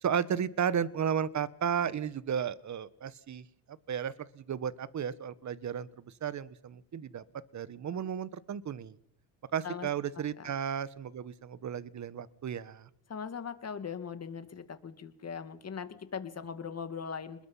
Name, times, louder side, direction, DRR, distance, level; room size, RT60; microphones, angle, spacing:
voice 1, 0.0-5.9 6.2-8.9 9.5-12.9, right 8 dB, 35° right, 17 dB, 1.3 m, -34 dB
voice 2, 10.2-10.5 13.1-17.5, left 6 dB, 30° left, 10 dB, 2.4 m, -40 dB
28.0 x 21.0 x 5.7 m, 0.71 s
cardioid pair, 105°, 50 cm